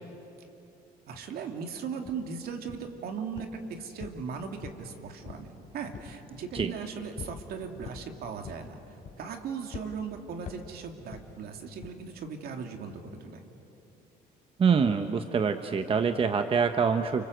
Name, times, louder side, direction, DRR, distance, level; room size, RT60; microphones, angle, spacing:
voice 1, 1.1-5.5 5.7-8.8 9.2-13.4, right 6 dB, 65° right, 4 dB, 2.7 m, -38 dB
sound 1, 2.1-2.2 2.7-3.0 3.4-3.6 4.0-4.9 5.2-5.5 5.9-6.2 6.6-6.8 7.2-7.4 7.8-8.1 8.4-8.7 9.0-9.4 9.7-9.9 10.5-10.7 11.1-11.3 11.8-12.0, left 7 dB, 50° left, 3.3 m, -43 dB
voice 2, 14.6-17.2, right 6 dB, 35° right, 8 dB, 1.0 m, -25 dB
29.5 x 25.5 x 8.0 m, 3.0 s
cardioid pair, 110°, 17 cm